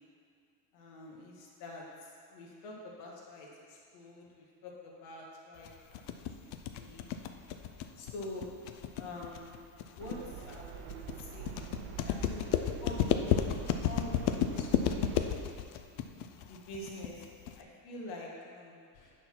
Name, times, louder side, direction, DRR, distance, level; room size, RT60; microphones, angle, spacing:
voice 1, 0.7-6.4 6.8-7.1 8.0-8.5 8.9-9.6 9.9-11.5 12.0-13.5 13.8-15.2 16.4-17.3 17.5-19.1, left 1 dB, 85° left, -2 dB, 1.9 m, -47 dB
sound 1, 5.6-17.6, left 9 dB, 65° left, 0.6 m, -32 dB
sound 2, 10.0-15.4, right 9 dB, 75° right, 0.7 m, -45 dB
9.3 x 4.2 x 5.9 m, 2.2 s
cardioid pair, 140°, 42 cm